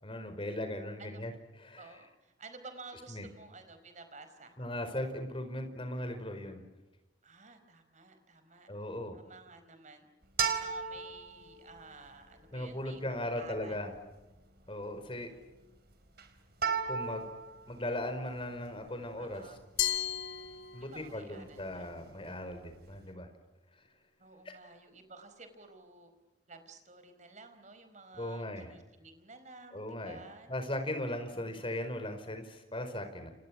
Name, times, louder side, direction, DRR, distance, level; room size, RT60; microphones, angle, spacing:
voice 1, 0.0-2.0 3.1-3.2 4.6-6.6 8.7-9.2 12.5-13.9 14.7-15.3 16.9-17.2 17.7-19.4 20.7-23.3 24.4-24.5 28.1-28.7 29.7-30.2 30.5-33.3, left 1 dB, 30° left, 7 dB, 5.0 m, -38 dB
voice 2, 1.8-4.6 7.2-8.7 9.1-10.1 10.4-13.9 19.2-19.6 20.8-21.9 24.2-26.1 26.5-30.5 31.3-31.8, right 3 dB, 40° right, 9 dB, 4.7 m, -53 dB
sound 1, 10.2-23.1, right 6 dB, 55° right, 4.1 m, -39 dB
Glass, 19.8-21.2, left 10 dB, 75° left, 2.9 m, -34 dB
29.5 x 29.5 x 6.2 m, 1.1 s
head